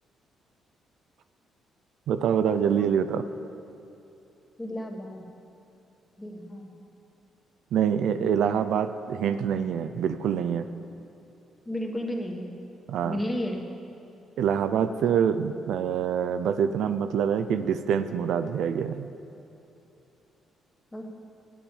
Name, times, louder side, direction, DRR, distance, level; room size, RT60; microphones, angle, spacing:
voice 1, 2.1-3.2 7.7-10.7 12.9-13.2 14.4-19.1, right 8 dB, 75° right, 10 dB, 0.4 m, -25 dB
voice 2, 4.6-5.3 6.2-6.7 11.7-12.5 13.0-13.7 20.9-21.1, equal, 20° left, 1 dB, 1.5 m, -33 dB
8.6 x 8.3 x 7.1 m, 2.9 s
cardioid pair, 90°, 0 cm